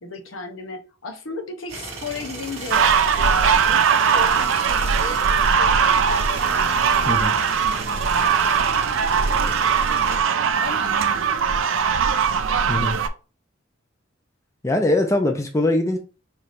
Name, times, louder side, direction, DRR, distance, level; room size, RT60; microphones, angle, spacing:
voice 1, 0.0-6.1 10.6-11.7, left 3 dB, 75° left, 0.8 m, -35 dB
sound 1, 1.7-10.2, right 3 dB, 30° right, 1.2 m, -35 dB
sound 2, 2.7-13.1, right 6 dB, 75° right, 0.4 m, -20 dB
voice 2, 14.6-16.0, left 1 dB, 15° left, 0.5 m, -21 dB
4.4 x 3.3 x 2.5 m
head